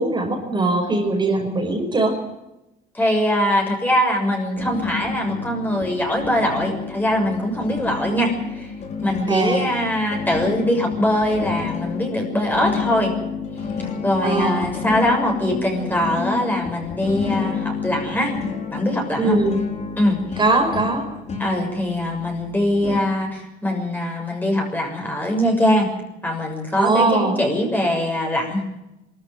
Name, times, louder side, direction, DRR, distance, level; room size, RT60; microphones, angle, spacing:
voice 1, 0.0-2.2 9.3-9.6 14.2-14.6 19.2-19.6 20.4-21.1 26.7-27.4, right 2 dB, 25° right, 2 dB, 5.5 m, -20 dB
voice 2, 2.9-8.7 9.0-13.1 14.0-18.3 18.7-19.4 20.0-20.4 21.4-25.9 26.2-28.6, equal, 10° left, 1 dB, 6.7 m, -22 dB
sound 1, 4.6-23.0, left 5 dB, 40° left, 4.9 m, -30 dB
22.5 x 14.0 x 9.4 m, 0.92 s
cardioid pair, 110°, 17 cm